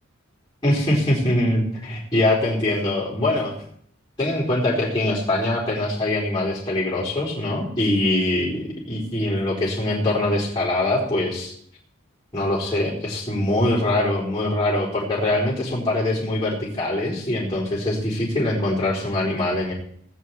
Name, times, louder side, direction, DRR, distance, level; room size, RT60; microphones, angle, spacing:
voice 1, 0.6-3.5 4.2-11.5 12.3-19.7, left 1 dB, 20° left, -6 dB, 4.5 m, -23 dB
17.5 x 6.4 x 8.5 m, 0.65 s
head